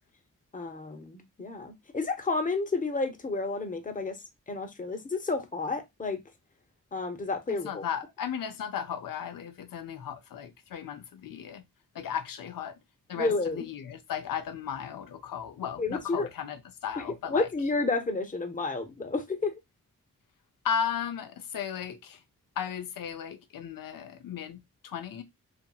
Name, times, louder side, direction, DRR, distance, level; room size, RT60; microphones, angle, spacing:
voice 1, 0.5-4.2 4.5-6.2 6.9-7.8 13.1-13.6 15.8-16.3 17.0-17.1 17.3-19.5, left 3 dB, 25° left, 0.7 m, -31 dB
voice 2, 7.5-11.6 11.9-12.8 13.1-17.5 20.6-22.2 22.6-25.2, left 8 dB, 85° left, 0.6 m, -35 dB
2.7 x 2.6 x 2.2 m
cardioid pair, 55°, 33 cm